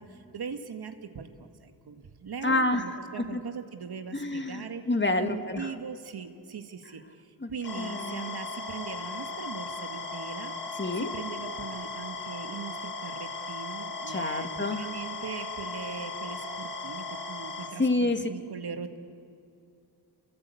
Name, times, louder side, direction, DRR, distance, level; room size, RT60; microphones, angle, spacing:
voice 1, 0.0-4.8 5.2-10.5 11.0-19.0, right 6 dB, 70° right, 6 dB, 1.9 m, -40 dB
voice 2, 2.4-2.8 3.2-3.4 4.1-5.7 7.4-7.5 7.8-8.4 10.8-11.1 14.1-14.9 17.8-18.3, left 2 dB, 30° left, 7 dB, 1.8 m, -28 dB
sound 1, 7.6-17.7, left 3 dB, 80° left, 3.2 m, -37 dB
28.0 x 23.0 x 8.5 m, 2.6 s
cardioid pair, 65°, 40 cm